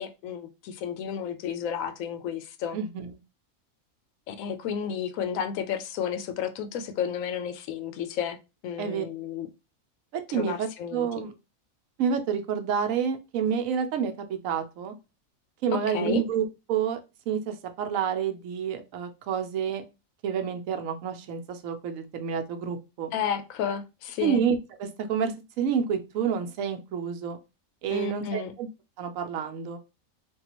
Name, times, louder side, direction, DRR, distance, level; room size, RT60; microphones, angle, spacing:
voice 1, 0.0-2.8 4.3-8.4 8.6-9.5 10.3-11.3 15.9-16.2 23.1-24.4 27.9-28.5, left 8 dB, 80° left, 1.0 m, -32 dB
voice 2, 2.7-3.1 8.8-9.0 10.1-11.3 12.0-14.9 15.6-17.0 17.3-19.8 20.2-23.1 24.2-27.4 27.8-28.7 29.0-29.8, right 7 dB, 75° right, 1.0 m, -29 dB
3.6 x 2.3 x 2.9 m
omnidirectional pair, 1.4 m